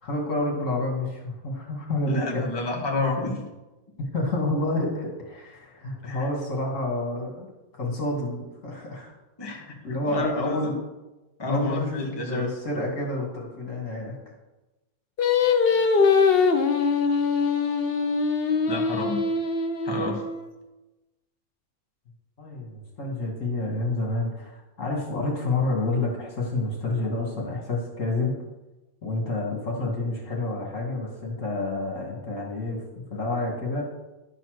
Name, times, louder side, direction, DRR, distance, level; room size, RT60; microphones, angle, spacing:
voice 1, 0.0-2.5 4.0-7.5 7.7-9.1 9.8-10.8 11.5-14.2 22.4-28.4 29.0-32.8 33.1-33.9, left 2 dB, 40° left, -1 dB, 2.3 m, -29 dB
voice 2, 2.1-3.4 6.0-6.3 9.4-9.7 10.0-10.6 11.4-12.5 18.7-19.2 19.8-20.2, left 3 dB, 20° left, -1 dB, 0.8 m, -29 dB
Singing, 15.2-20.5, left 5 dB, 70° left, 0.5 m, -22 dB
11.0 x 4.2 x 6.3 m, 1.1 s
omnidirectional pair, 2.0 m